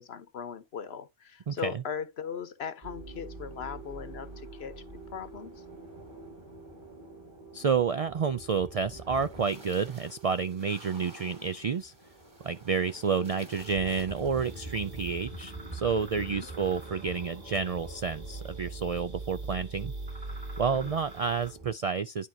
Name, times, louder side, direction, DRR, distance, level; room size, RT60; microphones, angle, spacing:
voice 1, 0.0-4.8 5.1-5.6 16.2-16.5 20.7-21.0, left 7 dB, 65° left, 1.1 m, -39 dB
voice 2, 1.5-1.8 7.5-11.9 12.4-19.9 20.6-22.3, right 6 dB, 65° right, 0.3 m, -30 dB
sound 1, 2.8-21.8, right 2 dB, 25° right, 1.9 m, -44 dB
sound 2, 14.4-21.5, right 1 dB, 50° right, 3.6 m, -51 dB
11.0 x 4.5 x 2.7 m
omnidirectional pair, 1.1 m